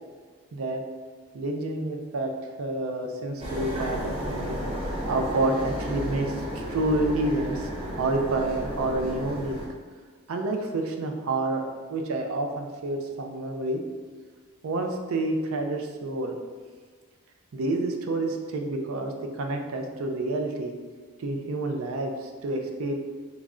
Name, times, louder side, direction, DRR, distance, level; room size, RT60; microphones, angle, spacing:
voice 1, 0.5-0.8 1.3-2.3 2.6-4.5 5.0-9.5 10.3-13.8 14.6-16.4 17.5-20.7 21.2-22.9, right 2 dB, 75° right, 4 dB, 0.4 m, -29 dB
sound 1, 3.4-9.7, equal, 25° right, 0.5 m, -33 dB
3.1 x 2.4 x 3.6 m, 1.5 s
head